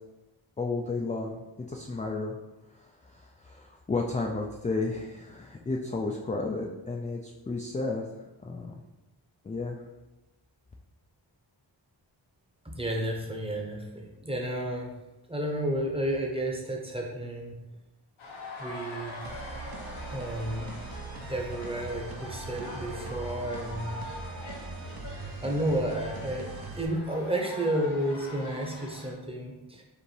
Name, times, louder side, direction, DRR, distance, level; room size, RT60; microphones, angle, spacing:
voice 1, 0.6-2.3 2.7-8.1 8.4-8.8 9.4-9.8, left 3 dB, 20° left, 0 dB, 0.3 m, -33 dB
voice 2, 12.6-14.9 15.3-17.6 18.6-19.1 20.1-20.7 21.3-24.0 25.4-26.5 26.7-29.8, right 1 dB, 10° right, 0 dB, 0.8 m, -31 dB
sound 1, 18.2-29.1, left 1 dB, 90° left, 1.0 m, -43 dB
sound 2, 19.2-26.8, right 3 dB, 50° right, 0.7 m, -41 dB
5.0 x 2.6 x 3.2 m, 1.0 s
wide cardioid pair, 60°, 47 cm